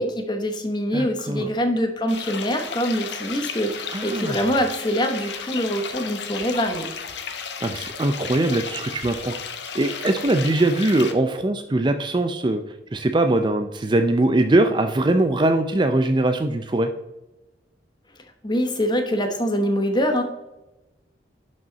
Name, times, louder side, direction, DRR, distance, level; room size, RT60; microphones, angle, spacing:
voice 1, 0.0-6.9 18.4-20.2, equal, 25° left, 5 dB, 1.0 m, -24 dB
voice 2, 0.9-1.5 3.9-4.4 7.6-9.3 9.7-12.6 12.9-16.9, right 2 dB, 25° right, 8 dB, 0.4 m, -21 dB
sound 1, 2.1-11.1, left 6 dB, 70° left, 0.9 m, -34 dB
11.0 x 5.3 x 4.0 m, 0.99 s
head